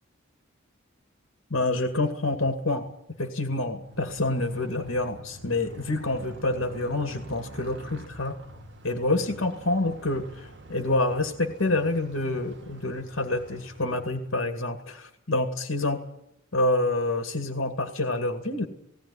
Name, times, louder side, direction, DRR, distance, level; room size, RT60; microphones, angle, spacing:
voice 1, 1.5-2.9 3.2-8.4 8.8-16.0 16.5-18.7, left 2 dB, 75° left, 6 dB, 2.2 m, -27 dB
Motorcycle, 3.8-14.4, right 1 dB, 60° right, 1.8 m, -46 dB
18.5 x 18.0 x 10.0 m, 0.81 s
head